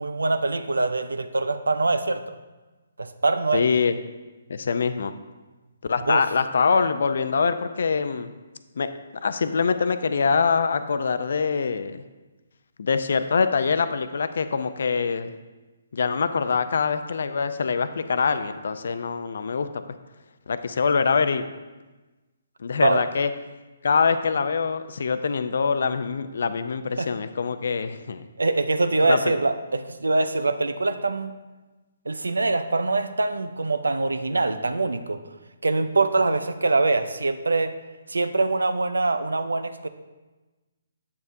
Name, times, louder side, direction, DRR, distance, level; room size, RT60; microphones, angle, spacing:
voice 1, 0.0-2.3 3.0-3.7 6.0-6.3 22.8-23.0 27.0-27.1 28.4-31.3 32.1-35.2 35.6-37.8 38.1-39.9, right 3 dB, 80° right, 11 dB, 0.5 m, -24 dB
voice 2, 3.5-4.0 4.5-5.1 5.8-8.3 8.8-8.9 9.2-12.0 12.8-15.3 15.9-19.8 20.5-21.5 22.6-23.3 23.8-28.2 29.1-29.4, left 5 dB, 60° left, 11 dB, 0.5 m, -24 dB
8.3 x 7.0 x 2.6 m, 1.2 s
figure-of-eight pair, 140°, 0 cm